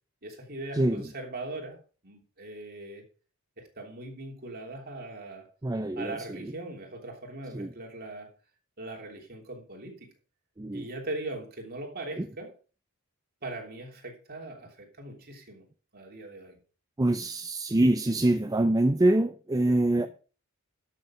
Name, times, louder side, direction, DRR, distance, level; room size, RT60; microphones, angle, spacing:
voice 1, 0.2-3.0 3.6-5.5 6.0-8.3 8.8-10.1 10.7-12.5 13.4-15.7 15.9-16.6 19.9-20.1, right 2 dB, 45° right, 3.1 m, -40 dB
voice 2, 0.7-1.1 5.6-6.5 7.5-7.7 10.6-10.9 12.2-12.3 17.0-20.1, right 1 dB, 15° right, 0.5 m, -25 dB
12.0 x 6.8 x 5.0 m
head